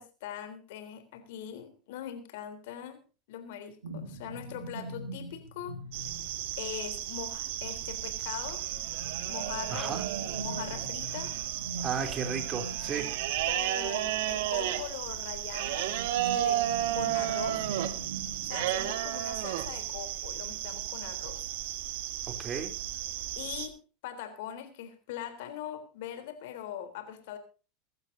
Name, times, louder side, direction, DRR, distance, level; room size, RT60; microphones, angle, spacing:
voice 1, 0.0-3.0 3.3-5.8 6.6-8.8 9.3-10.0 10.4-11.3 13.5-15.9 16.2-16.7 16.9-17.7 18.4-21.5 23.4-23.8 24.0-27.4, left 10 dB, 60° left, 3.5 m, -41 dB
sound 1, 3.8-18.7, right 2 dB, 80° right, 2.6 m, -43 dB
sound 2, 5.9-23.7, right 13 dB, 60° right, 1.6 m, -33 dB
voice 2, 9.7-10.0 11.8-13.1 22.3-22.7, right 6 dB, 30° right, 3.4 m, -34 dB
23.5 x 12.0 x 2.7 m
hypercardioid pair, 85°, 0 cm